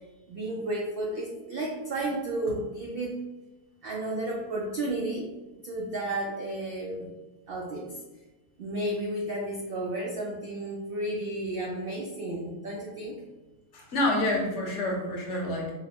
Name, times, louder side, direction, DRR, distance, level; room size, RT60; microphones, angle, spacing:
voice 1, 0.3-3.2 3.8-5.3 5.6-7.1 7.5-8.0 8.6-13.2, right 1 dB, 80° right, -2 dB, 0.5 m, -32 dB
voice 2, 13.7-15.8, left 1 dB, 60° left, 0 dB, 1.0 m, -28 dB
3.8 x 2.1 x 2.8 m, 1.1 s
omnidirectional pair, 1.6 m